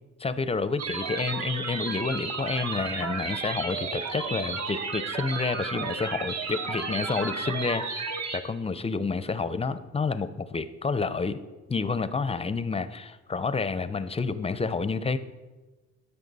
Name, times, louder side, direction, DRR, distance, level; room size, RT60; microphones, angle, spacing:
voice 1, 0.2-11.4 11.7-15.2, left 4 dB, 20° left, 13 dB, 0.5 m, -29 dB
sound 1, 0.8-8.4, right 4 dB, 60° right, 1.2 m, -33 dB
13.0 x 5.7 x 4.0 m, 1.2 s
cardioid pair, 90°, 30 cm